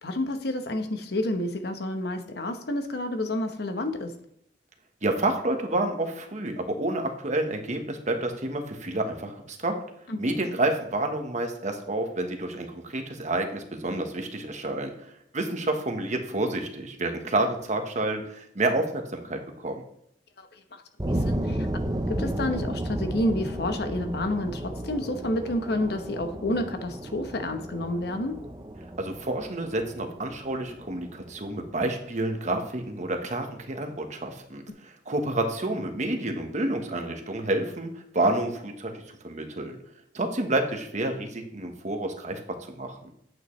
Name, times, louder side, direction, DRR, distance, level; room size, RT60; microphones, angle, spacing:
voice 1, 0.0-4.2 10.1-10.3 20.4-20.8 21.1-21.7 22.1-28.4, left 1 dB, 65° left, 7 dB, 1.0 m, -30 dB
voice 2, 5.0-9.7 10.2-19.8 29.0-38.9 39.2-39.8 40.1-42.4 42.7-43.0, right 2 dB, 45° right, 5 dB, 1.2 m, -29 dB
sound 1, 21.0-31.8, right 1 dB, 20° right, 0.7 m, -33 dB
9.1 x 8.5 x 3.2 m, 0.73 s
head